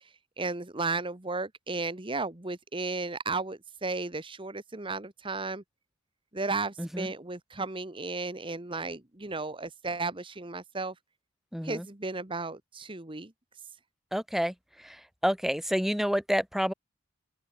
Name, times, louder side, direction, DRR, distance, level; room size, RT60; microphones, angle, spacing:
voice 1, 0.0-5.6 6.3-10.9 11.6-13.3, right 3 dB, 25° right, 1.4 m, -34 dB
voice 2, 11.5-11.9 14.1-14.5 14.8-16.7, equal, ahead, 2.2 m, -29 dB
open air
head